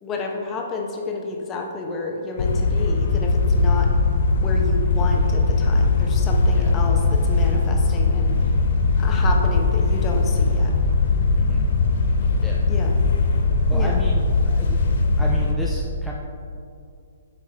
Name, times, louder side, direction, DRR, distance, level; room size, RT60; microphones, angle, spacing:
voice 1, 0.0-3.9 4.4-8.4 9.0-10.7 12.7-12.9 13.7-14.0, left 3 dB, 20° left, 1 dB, 0.9 m, -30 dB
sound 1, 2.4-15.5, left 3 dB, 55° left, 0.6 m, -20 dB
voice 2, 13.7-14.8 15.2-16.1, left 1 dB, ahead, -5 dB, 0.5 m, -33 dB
8.2 x 4.9 x 3.4 m, 2.4 s
figure-of-eight pair, 130°, 0 cm